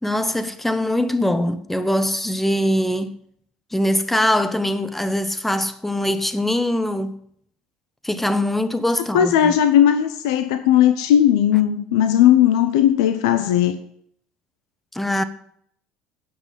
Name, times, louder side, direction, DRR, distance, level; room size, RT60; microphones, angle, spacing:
voice 1, 0.0-3.1 3.7-7.2 8.0-9.5 14.9-15.2, left 1 dB, 5° left, 1.0 m, -22 dB
voice 2, 9.1-13.8, left 10 dB, 85° left, 0.6 m, -17 dB
9.5 x 5.8 x 8.2 m
supercardioid pair, 85°, 3 cm